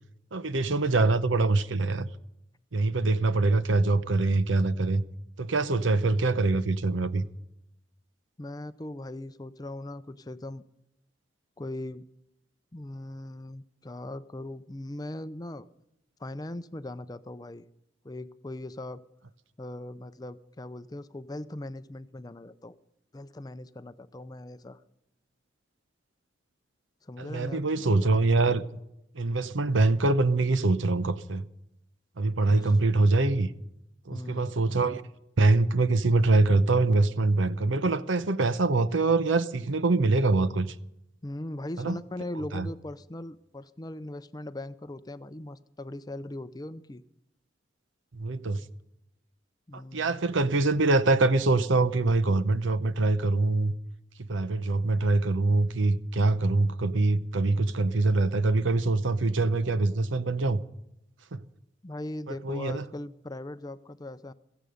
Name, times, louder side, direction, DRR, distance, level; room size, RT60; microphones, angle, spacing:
voice 1, 0.3-2.1 2.7-5.0 5.4-7.3 27.2-28.8 29.1-31.4 32.2-33.5 34.1-35.0 35.4-40.7 41.8-42.0 42.5-42.7 48.1-48.6 49.7-53.7 54.3-60.6 61.3-61.4 62.4-62.8, right 3 dB, 85° right, 0.8 m, -24 dB
voice 2, 8.4-10.6 11.6-12.1 12.7-15.7 16.2-17.6 18.0-19.0 19.6-22.8 23.1-24.8 27.0-28.1 32.6-32.7 34.1-34.5 41.2-47.0 49.7-50.2 61.8-64.3, left 1 dB, 20° left, 0.5 m, -39 dB
16.0 x 15.5 x 5.1 m
head